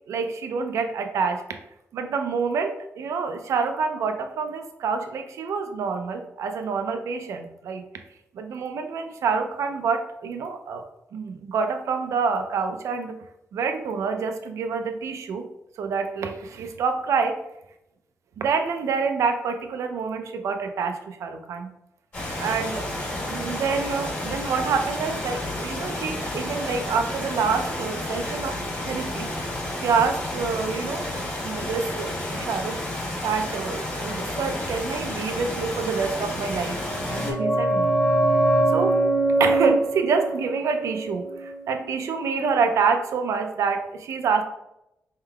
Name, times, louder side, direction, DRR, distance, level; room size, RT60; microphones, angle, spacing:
voice 1, 0.1-1.4 1.9-7.8 8.3-10.8 11.1-13.1 13.5-15.5 15.8-17.4 18.4-21.7 22.4-22.9 23.3-29.3 29.8-32.8 33.2-36.8 37.1-37.9 38.7-39.0 39.4-44.4, right 5 dB, 80° right, 6 dB, 0.4 m, -27 dB
sound 1, 22.1-37.3, left 1 dB, 35° left, 1.3 m, -31 dB
sound 2, 36.7-42.1 42.4-42.5, right 1 dB, 5° left, 0.5 m, -23 dB
4.5 x 3.6 x 2.3 m, 0.83 s
wide cardioid pair, 170°, 5 cm